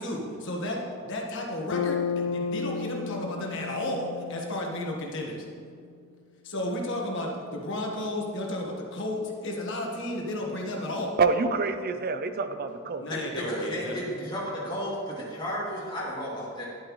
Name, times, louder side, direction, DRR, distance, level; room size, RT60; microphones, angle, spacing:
voice 1, 0.0-5.5 6.4-11.2 13.0-14.1, left 1 dB, 60° left, 0 dB, 1.4 m, -33 dB
Bass guitar, 1.7-5.8, left 6 dB, 90° left, 0.4 m, -33 dB
voice 2, 11.2-13.2, right 4 dB, 45° right, 9 dB, 0.5 m, -27 dB
voice 3, 13.1-16.7, equal, 20° left, -6 dB, 2.5 m, -33 dB
11.0 x 8.6 x 3.1 m, 2.2 s
head